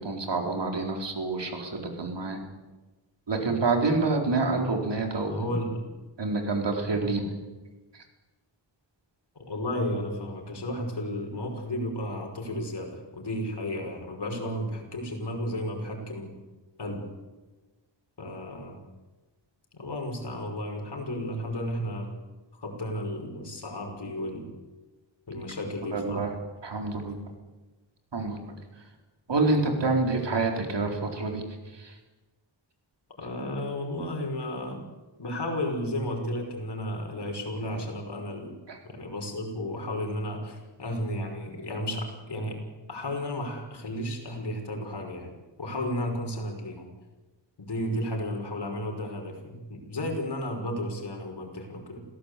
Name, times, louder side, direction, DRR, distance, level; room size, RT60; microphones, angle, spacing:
voice 1, 0.0-2.4 3.3-5.5 6.2-7.2 25.9-26.3 26.6-27.1 28.1-28.5 29.3-31.4 38.7-38.8, right 3 dB, 65° right, 3 dB, 4.3 m, -27 dB
voice 2, 5.2-5.9 7.0-7.2 9.4-16.3 16.8-17.1 18.2-18.8 19.7-22.1 22.5-24.5 25.3-26.2 33.2-34.9 35.2-38.6 38.8-42.6 42.9-45.3 45.6-46.9 47.6-52.1, left 1 dB, 60° left, 2 dB, 5.8 m, -33 dB
26.5 x 17.0 x 8.4 m, 1.2 s
wide cardioid pair, 100°, 46 cm